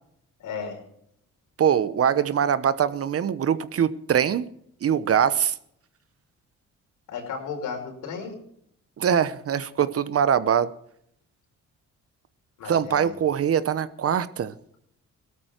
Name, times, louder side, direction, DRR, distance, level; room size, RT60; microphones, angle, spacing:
voice 1, 0.4-0.8 7.1-8.3 12.6-13.1, left 6 dB, 85° left, 2 dB, 5.2 m, -34 dB
voice 2, 1.6-4.5 4.8-5.5 9.0-10.7 12.6-14.5, right 8 dB, 50° right, 15 dB, 1.0 m, -23 dB
18.0 x 13.0 x 4.5 m, 0.70 s
cardioid pair, 90°, 30 cm